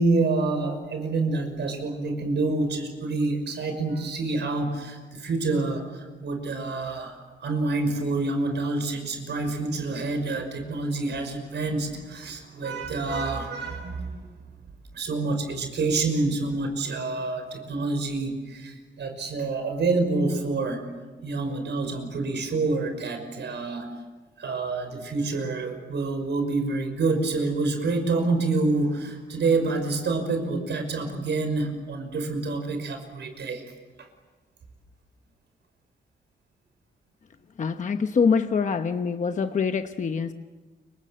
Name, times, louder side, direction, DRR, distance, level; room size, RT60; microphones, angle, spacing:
voice 1, 0.0-14.3 14.9-20.8 21.2-23.9 24.4-33.6 34.0-34.1, right 3 dB, 70° right, 6 dB, 5.8 m, -27 dB
voice 2, 37.6-40.3, left 5 dB, 40° left, 8 dB, 1.0 m, -24 dB
29.5 x 25.0 x 7.8 m, 1.3 s
wide cardioid pair, 135°, 19 cm